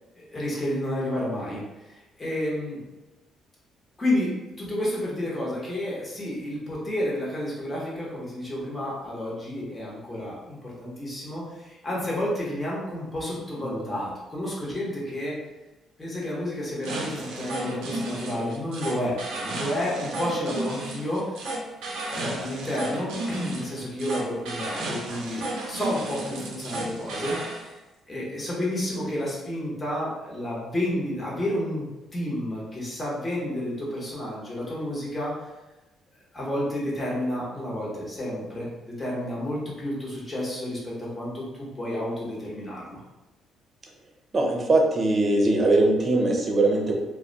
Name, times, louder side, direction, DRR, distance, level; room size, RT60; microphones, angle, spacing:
voice 1, 0.2-2.8 4.0-4.3 4.6-15.4 16.0-21.5 22.0-27.8 28.1-35.3 36.3-43.0, left 1 dB, 20° left, -6 dB, 1.1 m, -30 dB
sound 1, 16.8-27.6, right 2 dB, 80° right, 0.5 m, -33 dB
voice 2, 44.3-46.9, right 2 dB, 40° right, 0 dB, 0.7 m, -21 dB
2.3 x 2.2 x 3.9 m, 1.0 s
supercardioid pair, 65°, 0 cm